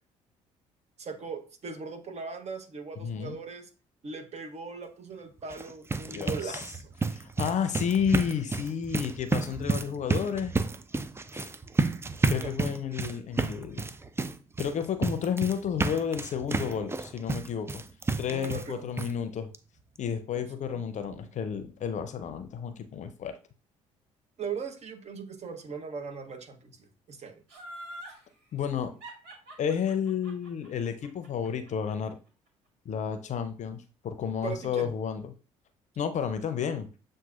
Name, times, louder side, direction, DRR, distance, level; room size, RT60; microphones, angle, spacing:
voice 1, 1.0-3.7 4.0-6.9 12.4-12.5 18.3-18.9 20.3-20.5 21.1-21.3 24.4-27.4 34.4-34.9, right 5 dB, 40° right, 7 dB, 1.0 m, -39 dB
voice 2, 3.0-3.4 6.1-6.6 7.1-10.5 11.3-11.5 12.3-13.9 14.6-17.8 18.2-19.5 20.0-23.4 28.5-28.9 29.6-32.2 32.9-35.3 36.0-36.9, left 7 dB, 45° left, 9 dB, 0.6 m, -31 dB
sound 1, 5.4-18.7 19.0-19.1 19.5-19.6 20.0-20.1, right 3 dB, 15° right, 0.4 m, -31 dB
Laughter, 27.5-28.2 29.0-32.1 32.5-32.6, right 1 dB, 75° right, 1.9 m, -44 dB
7.2 x 2.5 x 2.4 m, 0.36 s
hypercardioid pair, 55°, 17 cm